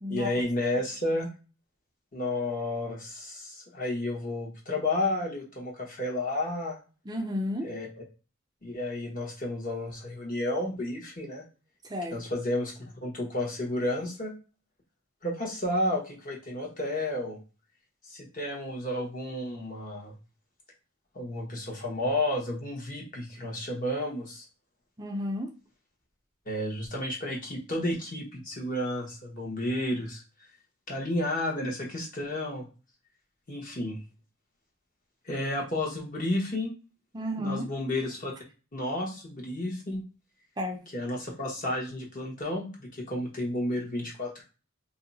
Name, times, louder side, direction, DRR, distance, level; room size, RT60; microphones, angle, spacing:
voice 1, 0.1-1.3 2.1-6.8 7.6-7.9 8.6-11.4 12.1-12.7 13.0-14.3 15.2-17.4 18.1-20.1 21.1-24.4 26.5-30.2 30.9-32.6 33.5-34.0 35.2-36.7 37.4-38.3 38.7-40.0 40.9-44.4, left 1 dB, 40° left, -1 dB, 1.1 m, -31 dB
voice 2, 7.1-7.7 11.8-12.2 25.0-25.5 37.1-37.6 40.6-40.8, left 1 dB, 20° right, 2 dB, 0.5 m, -32 dB
2.8 x 2.2 x 3.9 m, 0.34 s
head